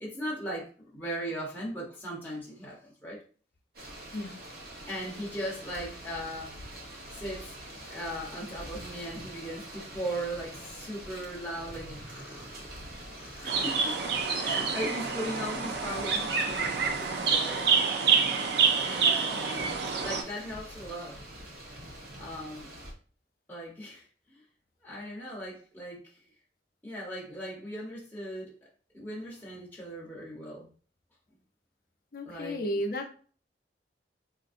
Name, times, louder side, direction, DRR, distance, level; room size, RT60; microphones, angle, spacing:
voice 1, 0.0-3.2 4.9-6.5 7.1-7.5 7.9-14.0 14.3-17.7 18.8-21.2 22.2-22.7 23.5-24.4 24.8-26.2 26.8-28.5 28.9-30.7 32.2-32.8, equal, 10° left, -4 dB, 0.8 m, -38 dB
sound 1, 3.7-22.9, right 1 dB, 55° right, 0.9 m, -45 dB
sound 2, 13.5-20.2, right 5 dB, 70° right, 0.5 m, -27 dB
voice 2, 32.1-33.1, equal, 55° left, 5 dB, 0.6 m, -33 dB
3.9 x 2.5 x 2.5 m, 0.41 s
head